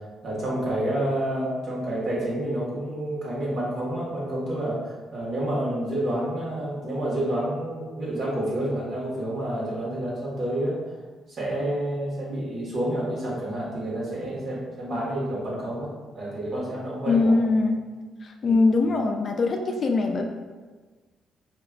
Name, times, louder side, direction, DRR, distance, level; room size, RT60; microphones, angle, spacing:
voice 1, 0.2-10.8 11.4-17.4 18.4-18.6, right 1 dB, 55° right, -6 dB, 1.5 m, -29 dB
voice 2, 17.1-17.8 18.2-20.2, left 3 dB, 50° left, 3 dB, 0.4 m, -22 dB
4.5 x 2.9 x 2.4 m, 1.4 s
cardioid pair, 90°, 0 cm